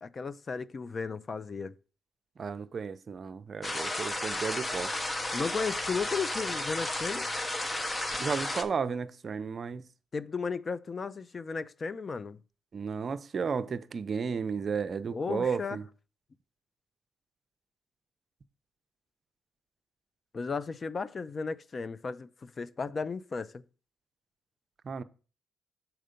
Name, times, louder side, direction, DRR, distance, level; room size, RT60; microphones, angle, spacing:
voice 1, 0.0-1.7 5.3-7.3 10.1-12.4 15.1-15.8 20.3-23.6, left 5 dB, 35° left, 0.4 m, -35 dB
voice 2, 2.4-4.9 8.2-9.8 12.7-15.8 24.8-25.0, right 5 dB, 45° right, 0.5 m, -33 dB
sound 1, 3.6-8.6, left 1 dB, 20° left, 0.8 m, -33 dB
6.6 x 4.5 x 5.1 m
cardioid pair, 90°, 0 cm